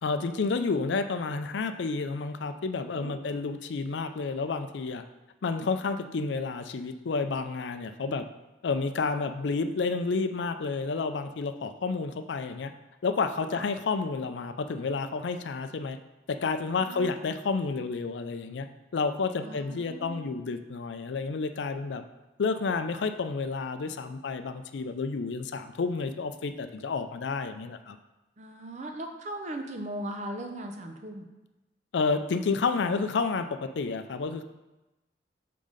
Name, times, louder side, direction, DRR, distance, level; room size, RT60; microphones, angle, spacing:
voice 1, 0.0-5.0 5.4-8.2 8.6-12.7 13.0-16.0 16.3-18.7 18.9-22.0 22.4-28.0 31.9-34.4, left 4 dB, 90° left, 9 dB, 0.4 m, -30 dB
voice 2, 16.8-17.2 19.4-20.5 28.4-31.3, right 1 dB, 40° right, 4 dB, 0.6 m, -39 dB
5.5 x 3.8 x 5.0 m, 1.0 s
head